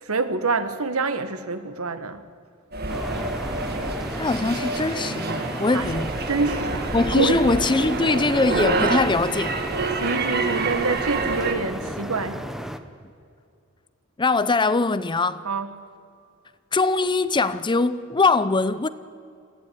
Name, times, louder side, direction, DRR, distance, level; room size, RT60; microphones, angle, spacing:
voice 1, 0.0-2.2 5.7-6.0 6.3-7.4 10.0-12.4 15.4-15.7, right 4 dB, 85° right, 1.5 m, -26 dB
sound 1, 2.7-11.5, right 3 dB, 50° right, 1.9 m, -28 dB
sound 2, 2.9-12.8, equal, ahead, 1.0 m, -34 dB
voice 2, 4.2-6.1 6.9-9.6 14.2-15.4 16.7-18.9, left 3 dB, 20° left, 0.6 m, -22 dB
22.0 x 15.0 x 9.5 m
head